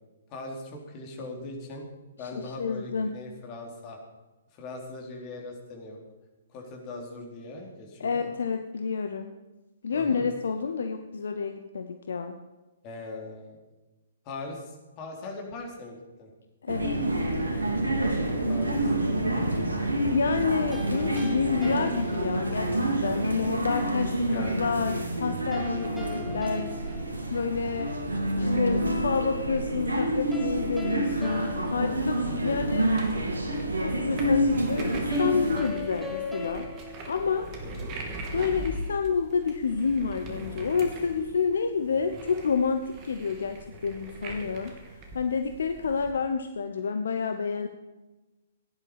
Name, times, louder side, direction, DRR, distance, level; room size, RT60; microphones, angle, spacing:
voice 1, 0.3-1.8 2.2-4.0 4.5-6.0 6.5-8.3 9.9-10.3 12.8-13.6 14.2-16.3 18.0-18.9 24.2-24.6 26.1-26.4 32.3-32.6 37.6-37.9, left 2 dB, 30° left, 0 dB, 4.1 m, -40 dB
voice 2, 2.2-3.2 8.0-9.3 9.8-12.4 16.6-17.1 20.1-26.7 27.3-28.0 28.3-32.9 33.8-36.7 37.1-37.5 38.3-44.7 45.1-47.7, left 5 dB, 60° left, 7 dB, 1.0 m, -29 dB
sound 1, 16.7-35.6, right 1 dB, 75° right, 2.9 m, -28 dB
sound 2, 20.7-22.9 25.5-27.9 30.3-32.8 35.1-37.9, left 3 dB, 5° right, 2.2 m, -40 dB
sound 3, 28.5-46.1, right 1 dB, 30° right, 2.9 m, -42 dB
17.0 x 11.0 x 5.1 m, 1.1 s
figure-of-eight pair, 120°, 0 cm